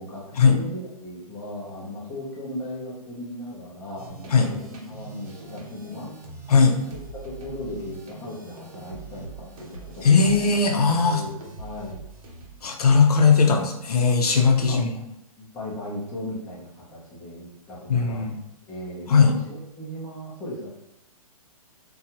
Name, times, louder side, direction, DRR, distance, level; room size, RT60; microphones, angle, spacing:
voice 1, 0.0-4.6 4.9-6.1 7.2-10.5 11.0-12.0 14.7-14.8 15.4-18.3 18.7-20.7, left 1 dB, 10° left, -6 dB, 0.5 m, -37 dB
sound 1, 4.0-12.7, right 3 dB, 65° right, 0.8 m, -43 dB
voice 2, 10.0-11.2 12.6-14.9 17.9-18.4 19.1-19.4, left 5 dB, 80° left, 2 dB, 0.6 m, -18 dB
2.7 x 2.3 x 2.8 m, 0.86 s
hypercardioid pair, 155°, 19 cm